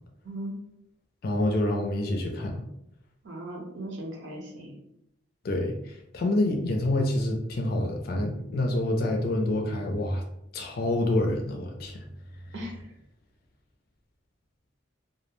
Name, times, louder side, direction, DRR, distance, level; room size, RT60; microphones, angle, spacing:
voice 1, 0.2-0.5 3.2-4.7 12.5-12.9, right 1 dB, 75° right, -1 dB, 0.7 m, -38 dB
voice 2, 1.2-2.6 5.4-10.2 10.5-12.0, left 1 dB, 50° left, 2 dB, 0.4 m, -27 dB
2.2 x 2.0 x 3.0 m, 0.78 s
head